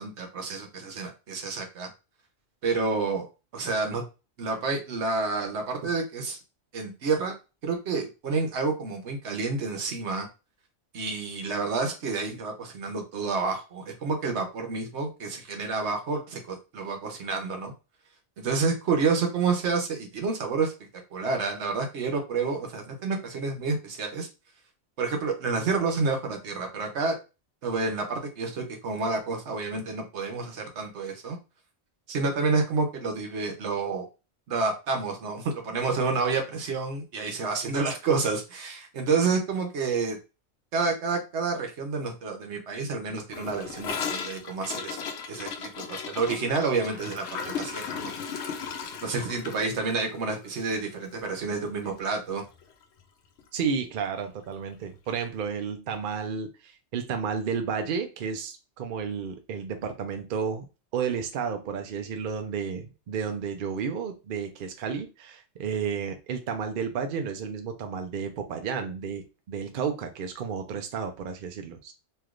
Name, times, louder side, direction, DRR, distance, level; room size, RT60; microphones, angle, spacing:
voice 1, 0.0-1.9 2.6-3.3 3.5-4.0 4.4-6.4 6.7-7.3 7.6-10.3 10.9-17.7 18.4-20.7 21.1-24.3 25.0-27.1 27.6-31.4 32.1-34.1 34.5-40.2 40.7-48.1 49.0-52.4, right 4 dB, 75° right, 3 dB, 1.1 m, -29 dB
Gurgling / Toilet flush, 43.3-51.6 51.8-52.0 52.3-52.7 53.0-53.1 53.4-53.5 54.4-54.5, left 6 dB, 75° left, 0.9 m, -36 dB
voice 2, 53.5-60.7 60.9-71.9, right 6 dB, 60° right, 6 dB, 0.6 m, -32 dB
3.2 x 2.7 x 2.4 m, 0.29 s
omnidirectional pair, 1.2 m